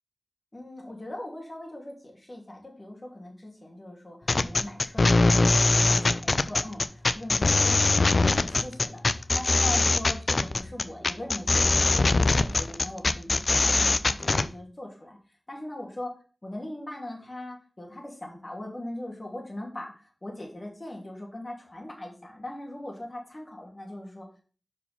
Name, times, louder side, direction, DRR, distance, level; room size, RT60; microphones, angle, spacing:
voice 1, 0.5-15.2 15.5-16.1 16.4-24.4, left 1 dB, 35° left, -1 dB, 2.9 m, -40 dB
sound 1, 4.3-14.5, left 3 dB, 65° left, 0.5 m, -22 dB
5.6 x 4.9 x 5.2 m, 0.38 s
wide cardioid pair, 50°, 0 cm